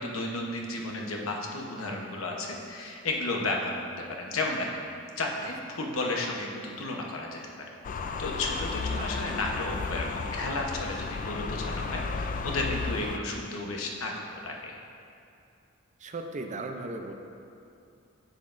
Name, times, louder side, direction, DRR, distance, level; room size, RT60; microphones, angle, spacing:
voice 1, 0.0-3.7 4.2-4.8 5.2-7.4 8.2-14.7, left 2 dB, 75° left, 0 dB, 1.0 m, -33 dB
sound 1, 7.8-13.2, left 4 dB, 40° left, 0.3 m, -33 dB
voice 2, 16.0-17.1, right 2 dB, 35° right, 4 dB, 0.5 m, -37 dB
10.0 x 7.6 x 2.6 m, 2.6 s
head